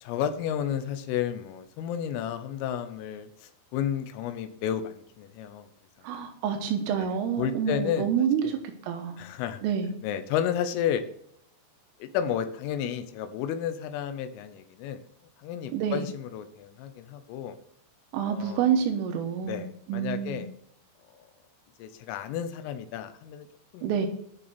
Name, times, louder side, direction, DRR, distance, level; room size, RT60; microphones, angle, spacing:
voice 1, 0.0-5.7 7.0-8.1 8.4-8.6 9.2-9.6 10.0-11.0 12.0-15.0 15.4-17.6 18.3-18.8 19.4-20.5 21.8-23.5 23.7-24.1, left 9 dB, 85° left, 9 dB, 3.5 m, -32 dB
voice 2, 6.0-8.6 8.8-9.2 9.6-9.9 15.7-16.1 18.1-20.5 23.8-24.1, right 8 dB, 85° right, 4 dB, 3.8 m, -28 dB
10.5 x 6.9 x 5.9 m, 0.69 s
omnidirectional pair, 5.7 m